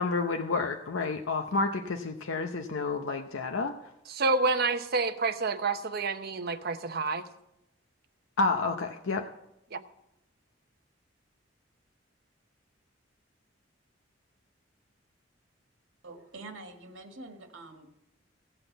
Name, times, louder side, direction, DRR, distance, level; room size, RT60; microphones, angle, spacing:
voice 1, 0.0-3.7 8.4-9.3, left 3 dB, 85° left, 4 dB, 0.8 m, -30 dB
voice 2, 4.2-7.3 9.7-9.8, right 3 dB, 50° right, 8 dB, 0.8 m, -28 dB
voice 3, 16.0-17.9, right 2 dB, 80° right, 4 dB, 1.7 m, -46 dB
16.5 x 5.9 x 7.9 m, 0.84 s
head